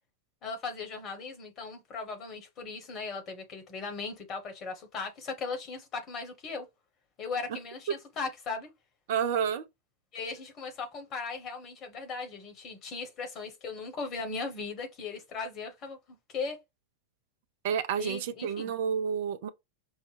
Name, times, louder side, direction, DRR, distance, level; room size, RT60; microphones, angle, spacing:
voice 1, 0.4-6.6 7.2-8.7 10.1-16.6 18.0-18.7, left 4 dB, 35° left, 1.3 m, -38 dB
voice 2, 9.1-9.6 17.6-19.5, right 7 dB, 50° right, 0.5 m, -29 dB
5.4 x 2.1 x 3.3 m
figure-of-eight pair, 90°, 0 cm